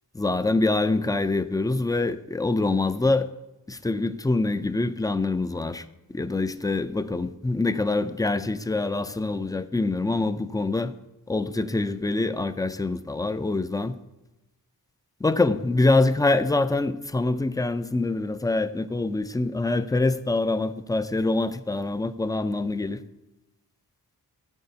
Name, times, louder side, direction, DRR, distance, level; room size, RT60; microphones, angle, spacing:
voice 1, 0.2-3.3 3.7-5.8 6.1-10.9 11.3-13.9 15.2-23.0, left 2 dB, 10° left, 0.4 m, -25 dB
14.5 x 7.7 x 2.7 m
wide cardioid pair, 85°, 39 cm